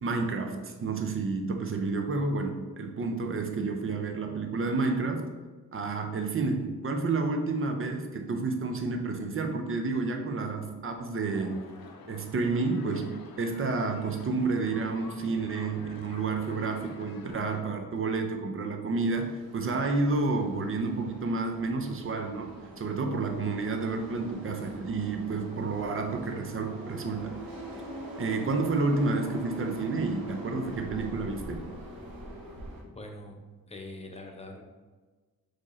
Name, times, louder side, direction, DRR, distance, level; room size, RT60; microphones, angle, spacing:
voice 1, 0.0-5.3 5.7-11.7 12.1-27.4 28.2-31.7, right 3 dB, 35° right, 4 dB, 0.5 m, -30 dB
sound 1, 11.2-17.6, left 4 dB, 70° left, 0.6 m, -48 dB
sound 2, 19.0-32.8, right 1 dB, 65° right, 0.9 m, -43 dB
voice 2, 32.8-34.6, left 1 dB, 20° left, 2 dB, 0.5 m, -44 dB
4.4 x 2.9 x 3.0 m, 1.3 s
wide cardioid pair, 130°, 36 cm